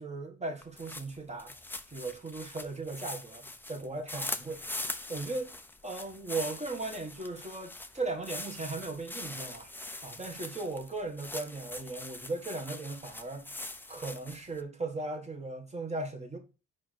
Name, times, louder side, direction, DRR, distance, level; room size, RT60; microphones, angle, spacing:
voice 1, 0.0-1.5 1.9-4.6 5.1-5.5 5.8-9.7 10.0-13.4 13.9-16.4, right 3 dB, 20° right, 1.8 m, -37 dB
sound 1, 0.6-14.6, left 2 dB, 5° left, 0.7 m, -42 dB
5.2 x 4.9 x 6.4 m
cardioid pair, 90°, 30 cm